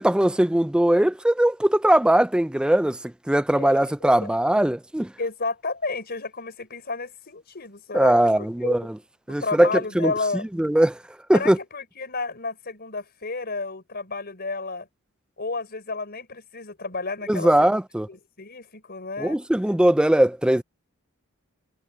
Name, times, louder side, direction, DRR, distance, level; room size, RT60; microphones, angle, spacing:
voice 1, 0.0-5.1 7.9-8.9 9.3-9.7 10.0-10.1 10.6-11.0 11.3-11.6 17.3-18.1 19.2-20.6, right 1 dB, 5° right, 0.3 m, -20 dB
voice 2, 3.5-4.3 5.2-8.9 9.3-10.5 11.3-14.9 15.4-17.7 18.1-19.4, left 3 dB, 45° left, 4.7 m, -32 dB
head